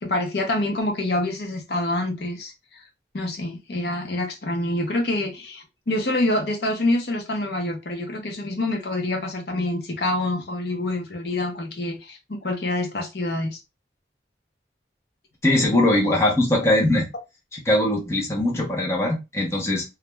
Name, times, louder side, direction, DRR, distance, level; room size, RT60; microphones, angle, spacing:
voice 1, 0.0-2.8 3.1-13.6, left 1 dB, 65° left, 0.6 m, -26 dB
voice 2, 15.4-17.1 17.7-19.8, left 1 dB, 15° left, 0.7 m, -21 dB
2.4 x 2.1 x 3.0 m
head